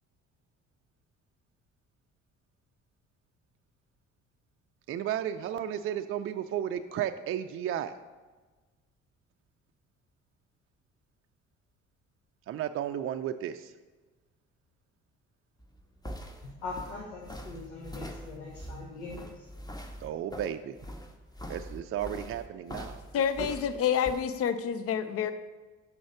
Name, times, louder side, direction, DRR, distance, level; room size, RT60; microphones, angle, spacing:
voice 1, 4.9-7.9 12.5-13.6 20.0-20.7 21.5-23.0, right 10 dB, 40° right, 8 dB, 0.4 m, -33 dB
sound 1, 15.6-24.2, equal, 10° left, 1.1 m, -43 dB
voice 2, 16.6-19.5, left 3 dB, 80° left, -2 dB, 1.1 m, -41 dB
voice 3, 23.1-25.3, left 8 dB, 40° left, 11 dB, 0.6 m, -28 dB
6.3 x 5.7 x 6.7 m, 1.3 s
hypercardioid pair, 50°, 35 cm